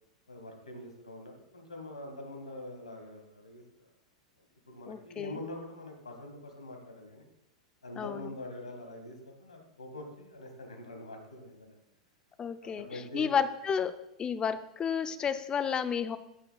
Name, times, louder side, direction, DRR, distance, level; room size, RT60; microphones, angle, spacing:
voice 1, 0.3-3.6 4.7-7.3 7.8-11.8 12.8-13.3, left 1 dB, 85° left, 3 dB, 2.1 m, -44 dB
voice 2, 4.9-5.4 8.0-8.3 12.4-16.2, left 7 dB, 25° left, 12 dB, 0.6 m, -32 dB
14.0 x 8.9 x 2.4 m, 0.83 s
figure-of-eight pair, 95°, 3 cm